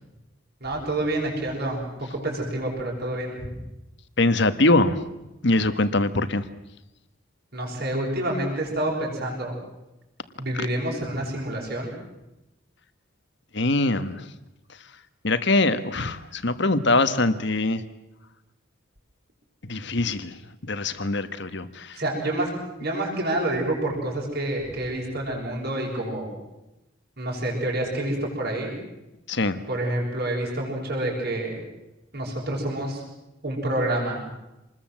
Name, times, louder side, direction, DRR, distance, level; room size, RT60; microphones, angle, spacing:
voice 1, 0.6-3.5 7.5-9.5 10.4-11.9 21.9-22.5 22.8-26.3 27.2-28.7 29.7-31.6 32.1-33.0 33.4-34.2, right 1 dB, 50° right, -1 dB, 6.8 m, -28 dB
voice 2, 4.2-5.0 5.4-6.5 13.5-14.3 14.7-14.9 15.2-17.8 19.6-22.0 29.3-29.6, left 2 dB, 55° left, 11 dB, 1.5 m, -23 dB
27.0 x 21.0 x 7.7 m, 0.98 s
head